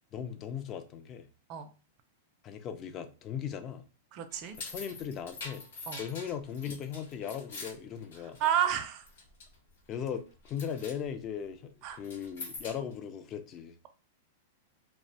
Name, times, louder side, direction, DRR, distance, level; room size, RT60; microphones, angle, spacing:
voice 1, 0.1-1.3 2.4-3.8 4.6-5.6 6.0-8.4 9.9-13.8, left 8 dB, 30° left, 0.3 m, -38 dB
voice 2, 4.1-4.6 5.9-6.0 8.4-9.0 11.8-12.0, right 10 dB, 40° right, 0.4 m, -30 dB
sound 1, 4.3-8.8 9.1-9.5 9.9-10.2 10.4-11.0 12.0-12.9, left 3 dB, 80° left, 1.0 m, -44 dB
2.4 x 2.1 x 2.6 m
hypercardioid pair, 140°, 0 cm